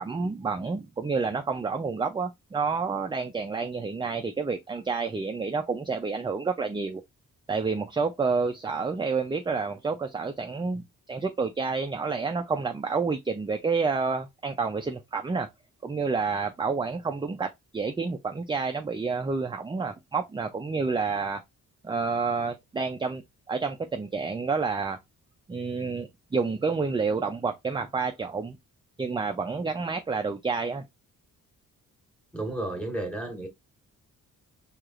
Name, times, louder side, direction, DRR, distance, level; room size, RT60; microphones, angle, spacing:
voice 1, 0.0-7.0 7.5-15.5 15.8-21.4 21.8-25.0 25.5-28.6 29.0-30.8, right 4 dB, 15° right, 0.3 m, -29 dB
voice 2, 32.3-33.5, right 2 dB, 5° left, 1.4 m, -32 dB
4.7 x 2.9 x 2.4 m
cardioid pair, 95°, 34 cm